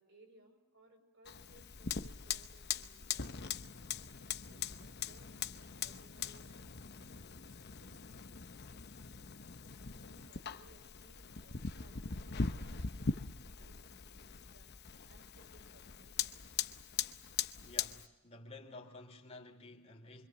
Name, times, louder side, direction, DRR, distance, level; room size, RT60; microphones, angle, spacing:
voice 1, 0.0-7.5 7.8-8.0 9.9-16.4, right 2 dB, 55° right, 6.1 m, -65 dB
Fire, 1.2-18.1, left 6 dB, 45° left, 0.9 m, -41 dB
voice 2, 17.6-20.3, left 2 dB, 30° left, 3.1 m, -52 dB
25.5 x 25.0 x 7.6 m
head